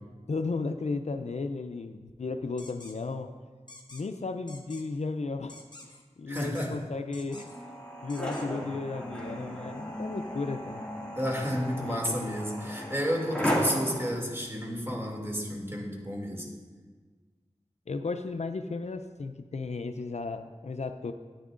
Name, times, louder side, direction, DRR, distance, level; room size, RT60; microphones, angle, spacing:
voice 1, 0.3-3.3 3.9-7.5 8.0-10.8 11.8-12.4 17.9-21.1, left 3 dB, 65° left, 8 dB, 0.4 m, -34 dB
sound 1, 2.6-2.9 3.7-4.0 4.5-4.8 5.5-6.0 6.3-6.8 7.1-7.6 8.1-8.5, left 2 dB, 35° left, 1.2 m, -49 dB
voice 2, 6.3-6.7 11.2-16.5, equal, 20° right, -1 dB, 2.3 m, -31 dB
sound 2, 7.3-14.1, equal, 10° left, 2.0 m, -35 dB
13.5 x 9.4 x 2.5 m, 1.4 s
wide cardioid pair, 45°, 12 cm